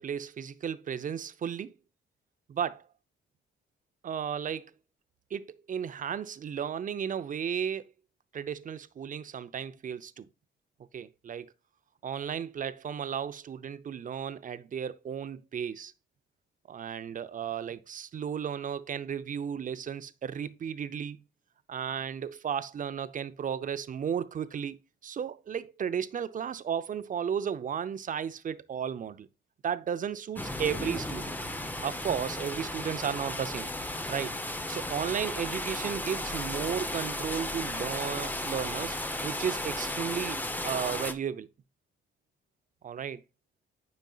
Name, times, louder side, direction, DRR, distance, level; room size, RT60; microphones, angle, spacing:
voice 1, 0.0-1.7 2.5-2.8 4.0-4.7 5.3-7.9 8.3-10.3 10.9-11.5 12.0-15.9 16.7-21.2 21.7-29.3 29.6-33.7 34.1-34.3 34.7-39.0 39.2-41.5 42.8-43.2, right 8 dB, 40° right, 0.6 m, -34 dB
sound 1, 30.4-41.1, left 1 dB, 10° left, 0.8 m, -35 dB
9.3 x 5.3 x 2.4 m
cardioid pair, 90°, 20 cm